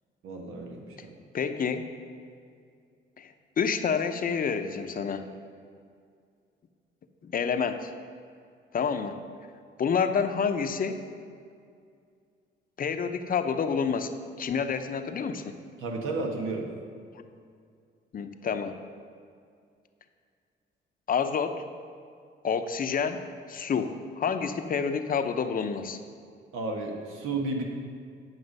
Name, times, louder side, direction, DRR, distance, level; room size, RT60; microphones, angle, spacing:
voice 1, 0.2-1.1 15.8-16.7 26.5-27.6, right 3 dB, 85° right, 1 dB, 1.4 m, -32 dB
voice 2, 1.3-1.8 3.2-5.3 7.2-7.9 8.7-9.2 9.8-11.0 12.8-14.1 14.4-15.6 17.1-17.2 18.1-18.8 21.1-21.6 22.4-26.0, left 6 dB, 45° left, 8 dB, 0.7 m, -28 dB
9.8 x 5.9 x 5.4 m, 2.3 s
cardioid pair, 90°, 20 cm